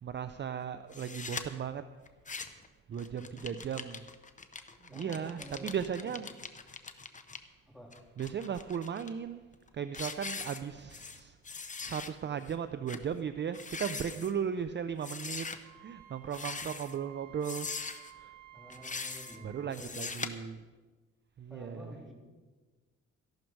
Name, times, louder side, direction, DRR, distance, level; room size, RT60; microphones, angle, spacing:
voice 1, 0.0-1.9 2.9-4.1 4.8-6.3 8.2-9.4 9.7-11.4 11.8-17.7 18.1-18.4 18.8-18.9 19.4-20.6 21.4-22.0, right 8 dB, 35° right, 11 dB, 0.6 m, -37 dB
sound 1, 0.9-1.4 2.1-2.7 3.0-7.4 7.9-9.1 9.5-9.7 9.9-11.2 11.4-12.1 12.5-12.6 12.9-13.0 13.5-14.3 15.0-15.6 16.3-17.0 17.4-18.1 18.7-19.4 19.7-20.3, left 4 dB, 25° left, 1.0 m, -41 dB
voice 2, 2.9-3.7 4.9-6.2 7.7-7.9 18.5-20.2 21.5-22.1, equal, ahead, -1 dB, 3.6 m, -50 dB
Wind instrument woodwind instrument, 15.6-19.7, right 12 dB, 80° right, 1.5 m, -54 dB
14.5 x 11.5 x 4.7 m, 1.3 s
cardioid pair, 90°, 30 cm